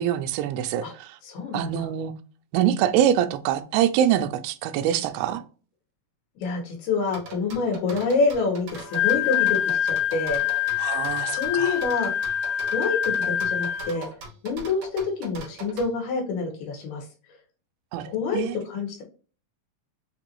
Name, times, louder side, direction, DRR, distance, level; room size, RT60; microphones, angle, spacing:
voice 1, 0.0-1.1 1.5-2.1 2.5-5.4 10.8-11.8 17.9-18.6, right 10 dB, 85° right, 2.4 m, -24 dB
voice 2, 1.2-1.9 6.4-10.4 11.4-12.1 12.7-14.1 14.4-17.0 18.0-19.0, left 4 dB, 85° left, 3.3 m, -27 dB
sound 1, 7.1-15.9, right 4 dB, 60° right, 2.8 m, -41 dB
Wind instrument woodwind instrument, 8.7-14.1, left 10 dB, 65° left, 2.4 m, -25 dB
6.8 x 2.7 x 2.9 m
omnidirectional pair, 4.2 m